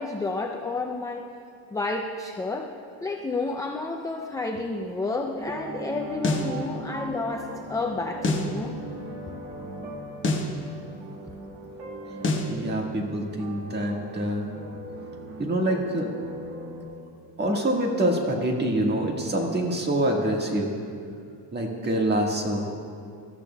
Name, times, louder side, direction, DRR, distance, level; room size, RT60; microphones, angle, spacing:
voice 1, 0.0-1.3 1.7-2.7 3.0-8.7, left 3 dB, 10° left, 1 dB, 0.3 m, -30 dB
sound 1, 5.3-16.8, right 1 dB, 70° right, 2.0 m, -39 dB
sound 2, 6.2-6.5 8.2-8.5 10.2-10.5 12.2-12.5, left 2 dB, 25° left, 1.1 m, -25 dB
voice 2, 12.5-14.5 15.4-16.1 17.4-20.7 21.5-22.7, right 1 dB, 25° right, 0 dB, 1.6 m, -25 dB
21.0 x 13.0 x 2.2 m, 2.4 s
cardioid pair, 155°, 44 cm